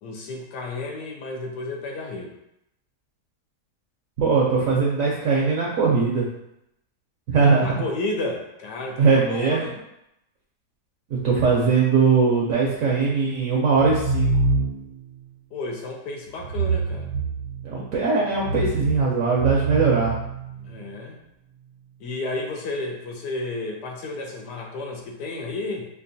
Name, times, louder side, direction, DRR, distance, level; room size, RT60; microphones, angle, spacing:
voice 1, 0.0-2.3 7.6-9.8 15.5-17.1 20.6-21.2 22.0-25.9, left 2 dB, 80° left, 1 dB, 1.3 m, -32 dB
voice 2, 4.2-6.3 7.3-7.7 9.0-9.6 11.1-14.3 17.6-20.1, right 4 dB, 65° right, -4 dB, 0.9 m, -20 dB
sound 1, 13.7-15.0 16.4-17.8 18.3-20.8, right 4 dB, 85° right, 1.2 m, -26 dB
4.6 x 2.5 x 2.6 m, 0.81 s
omnidirectional pair, 1.8 m